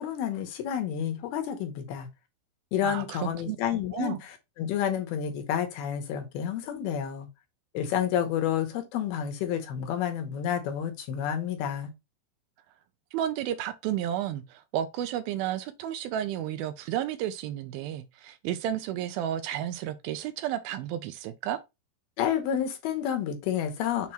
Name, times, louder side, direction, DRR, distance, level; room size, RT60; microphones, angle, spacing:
voice 1, 0.0-2.1 2.7-7.3 7.7-11.9 22.2-24.1, left 9 dB, 75° left, 2.9 m, -30 dB
voice 2, 2.8-3.6 3.9-4.2 13.1-21.6, right 11 dB, 80° right, 2.3 m, -32 dB
7.0 x 3.0 x 4.4 m
omnidirectional pair, 4.6 m